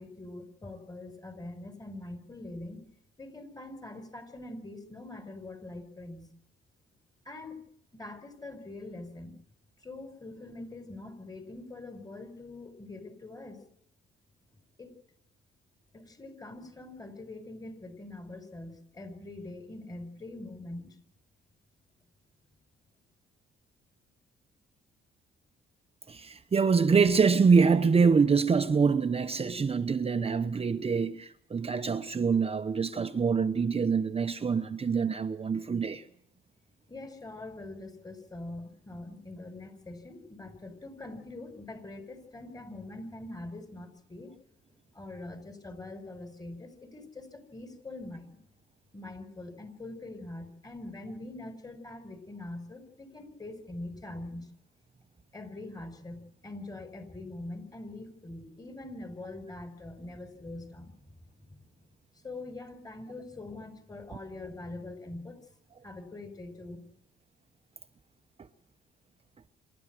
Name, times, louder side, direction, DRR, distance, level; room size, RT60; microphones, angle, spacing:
voice 1, 0.0-2.8 3.2-6.3 7.2-7.6 7.9-9.4 9.8-13.6 14.8-14.9 15.9-21.0 36.9-44.3 44.9-48.4 48.9-54.5 55.3-61.1 62.2-65.4 65.8-66.8, left 2 dB, 20° left, 4.9 m, -43 dB
voice 2, 26.1-36.0, right 5 dB, 30° right, 0.9 m, -25 dB
26.0 x 12.5 x 9.1 m
cardioid pair, 90°, 20 cm